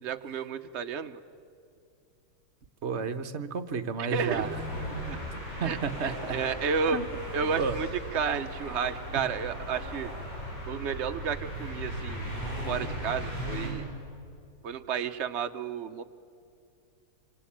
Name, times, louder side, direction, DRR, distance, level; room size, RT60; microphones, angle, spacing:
voice 1, 0.0-1.2 4.0-4.4 5.1-5.2 5.6-7.0 7.3-10.1 10.7-12.3 12.7-13.9 14.6-16.0, right 6 dB, 85° right, 8 dB, 0.6 m, -32 dB
voice 2, 2.8-4.5 5.6-6.4 6.9-7.1 7.4-7.8 9.1-9.2, right 5 dB, 45° right, 9 dB, 0.9 m, -32 dB
sound 1, 4.1-13.7, equal, 55° left, 8.7 m, -37 dB
26.0 x 26.0 x 8.6 m, 2.5 s
omnidirectional pair, 2.3 m